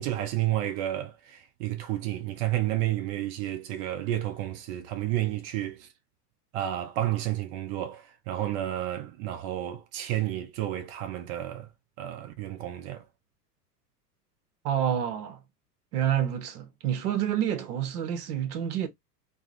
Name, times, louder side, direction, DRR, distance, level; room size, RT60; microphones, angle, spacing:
voice 1, 0.0-5.9 6.5-11.7 12.0-13.0, right 13 dB, 45° right, 0.5 m, -31 dB
voice 2, 14.6-15.4 15.9-18.9, right 10 dB, 70° right, 0.9 m, -28 dB
3.3 x 2.0 x 2.4 m
hypercardioid pair, 90°, 47 cm